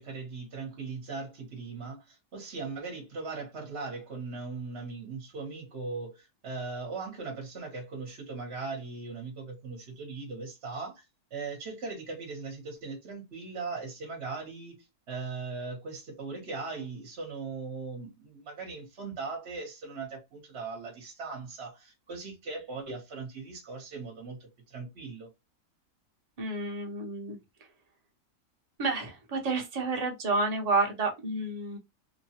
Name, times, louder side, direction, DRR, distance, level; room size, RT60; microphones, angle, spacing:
voice 1, 0.0-11.0 11.3-25.3, right 4 dB, 50° right, 1.1 m, -39 dB
voice 2, 26.4-27.4 28.8-31.8, right 3 dB, 35° right, 0.7 m, -30 dB
3.1 x 2.2 x 2.8 m
omnidirectional pair, 1.6 m